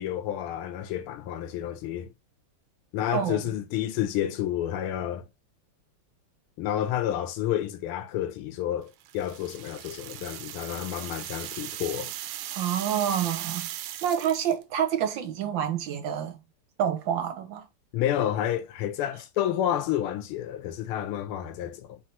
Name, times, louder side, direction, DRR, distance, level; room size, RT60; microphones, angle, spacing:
voice 1, 0.0-2.1 2.9-5.3 6.6-12.1 17.9-22.0, left 11 dB, 80° left, 1.6 m, -30 dB
sound 1, 9.1-14.6, right 12 dB, 90° right, 1.5 m, -38 dB
voice 2, 12.5-13.7 14.0-16.4 16.8-17.6, right 9 dB, 65° right, 1.5 m, -28 dB
4.6 x 3.3 x 2.9 m
omnidirectional pair, 2.4 m